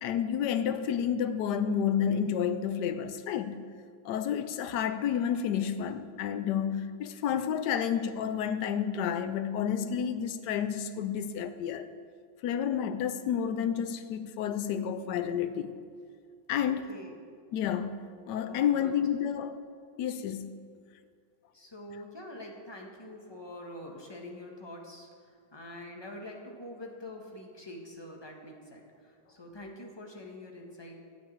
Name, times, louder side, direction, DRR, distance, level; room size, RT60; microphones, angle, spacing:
voice 1, 0.0-3.6 4.0-11.9 12.4-15.8 16.5-16.9 17.5-19.6 20.0-20.5, left 8 dB, 70° left, 1.1 m, -30 dB
voice 2, 16.6-17.1 18.4-19.1 21.5-31.0, left 1 dB, 15° left, 1.3 m, -45 dB
11.5 x 6.1 x 8.8 m
omnidirectional pair, 2.2 m